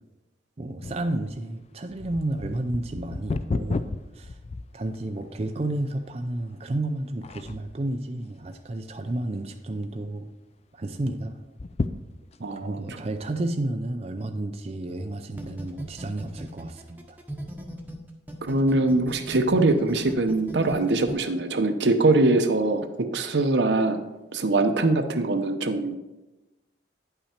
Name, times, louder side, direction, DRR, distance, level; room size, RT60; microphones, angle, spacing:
voice 1, 0.6-4.4 4.7-10.3 10.7-11.4 12.5-17.2, right 1 dB, 35° right, 5 dB, 0.5 m, -31 dB
sound 1, 0.8-5.3 5.9-6.0 6.6-6.9 7.2-7.9 8.4-9.1 9.5-9.6 9.8-9.9 11.4-12.6 13.2-13.3, left 3 dB, 35° left, 0.3 m, -33 dB
voice 2, 12.4-12.8 18.4-22.9 23.1-24.0 24.3-26.0, right 2 dB, 75° right, 7 dB, 0.8 m, -22 dB
sound 2, 15.4-17.9 18.3-21.1, right 1 dB, 10° right, 1.0 m, -36 dB
9.8 x 5.7 x 4.4 m, 1.1 s
head